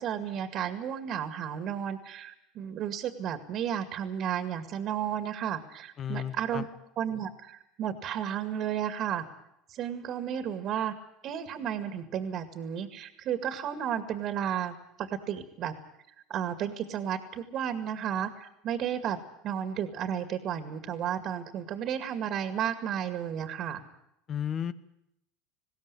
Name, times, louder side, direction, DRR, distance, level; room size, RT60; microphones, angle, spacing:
voice 1, 0.0-6.6 7.0-9.2 9.7-10.9 11.2-15.7 16.3-19.2 19.4-23.8, right 9 dB, 55° right, 9 dB, 2.1 m, -33 dB
voice 2, 6.0-6.7 24.3-24.7, left 9 dB, 40° left, 14 dB, 1.3 m, -33 dB
20.5 x 16.5 x 9.8 m, 0.79 s
supercardioid pair, 95°, 0 cm